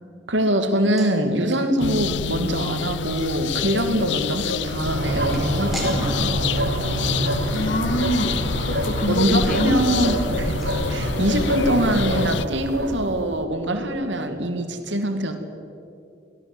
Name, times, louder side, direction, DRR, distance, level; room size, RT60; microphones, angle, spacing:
voice 1, 0.3-6.3 9.1-10.6 10.9-15.4, right 1 dB, 80° right, 5 dB, 2.5 m, -23 dB
sound 1, 0.7-11.9 12.2-12.3 12.6-12.8, equal, ahead, 4.5 m, -43 dB
sound 2, 1.8-12.5, left 7 dB, 75° left, 0.6 m, -28 dB
sound 3, 4.8-13.4, right 1 dB, 60° right, 1.8 m, -26 dB
voice 2, 7.2-9.7, equal, 45° left, 8 dB, 1.8 m, -25 dB
23.5 x 17.0 x 8.1 m, 2.6 s
head